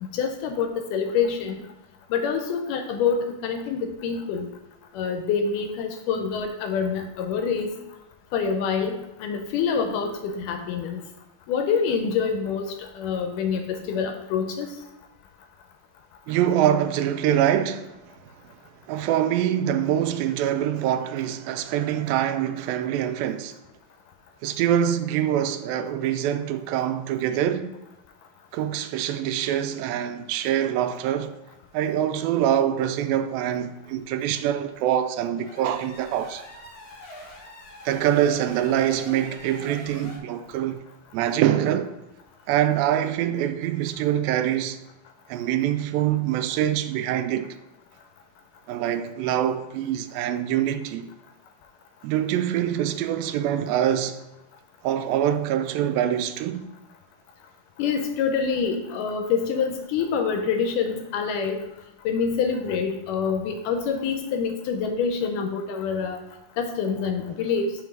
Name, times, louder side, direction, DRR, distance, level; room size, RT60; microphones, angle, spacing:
voice 1, 0.0-1.6 2.1-4.5 4.9-7.7 8.3-11.0 11.5-14.7 57.8-61.6 62.1-66.2 66.6-67.8, left 6 dB, 80° left, 2.0 m, -26 dB
voice 2, 16.3-17.9 18.9-23.5 24.4-27.7 28.5-31.3 31.7-36.4 37.9-40.8 41.1-41.9 42.5-44.8 45.3-47.6 48.7-51.1 52.0-54.2 54.8-56.6, right 10 dB, 85° right, 2.3 m, -24 dB
sound 1, 35.3-40.2, left 1 dB, 45° left, 1.2 m, -44 dB
5.8 x 4.6 x 5.1 m
omnidirectional pair, 4.1 m